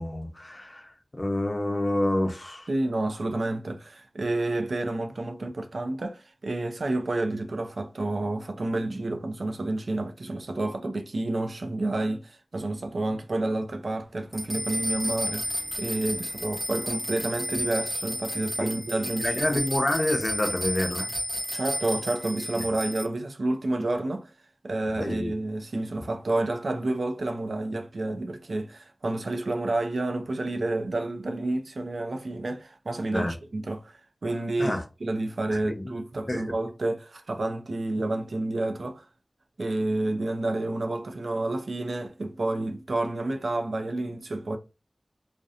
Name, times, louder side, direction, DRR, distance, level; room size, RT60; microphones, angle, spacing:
voice 1, 0.0-2.7 18.6-18.8 19.2-21.1 25.0-25.3 33.1-33.3 34.6-34.8 35.5-35.9 36.3-36.4, left 1 dB, 35° left, 0.6 m, -28 dB
voice 2, 2.7-19.6 21.5-24.3 24.6-39.0 39.6-44.6, right 2 dB, 85° right, 0.4 m, -30 dB
sound 1, 14.3-23.0, equal, 5° left, 0.9 m, -32 dB
2.7 x 2.1 x 2.4 m
wide cardioid pair, 50°, 0 cm